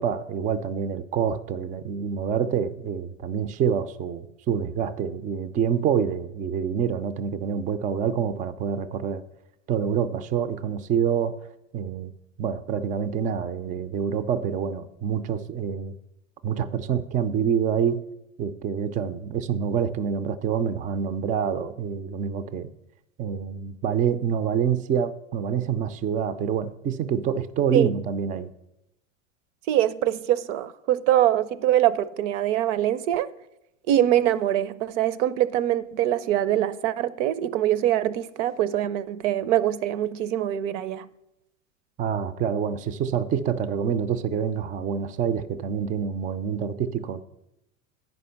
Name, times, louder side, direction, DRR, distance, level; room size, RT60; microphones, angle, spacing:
voice 1, 0.0-9.2 9.7-11.4 11.7-12.1 12.4-15.9 16.4-18.0 18.4-22.7 23.2-28.5 42.0-47.2, right 7 dB, 20° right, 0.4 m, -26 dB
voice 2, 29.7-33.3 33.9-41.1, right 12 dB, 65° right, 0.6 m, -23 dB
9.4 x 5.3 x 5.7 m
hypercardioid pair, 105°, 40 cm